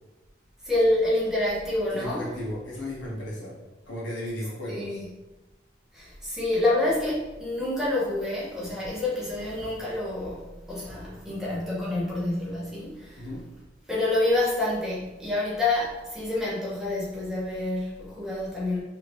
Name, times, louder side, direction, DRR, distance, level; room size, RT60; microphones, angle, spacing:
voice 1, 0.6-2.3 4.7-5.0 5.9-13.3 13.9-18.8, left 2 dB, 5° right, -7 dB, 1.2 m, -27 dB
voice 2, 1.9-3.6 3.9-5.0 13.1-13.5, left 1 dB, 85° left, -6 dB, 1.5 m, -35 dB
4.9 x 3.4 x 3.1 m, 1.1 s
head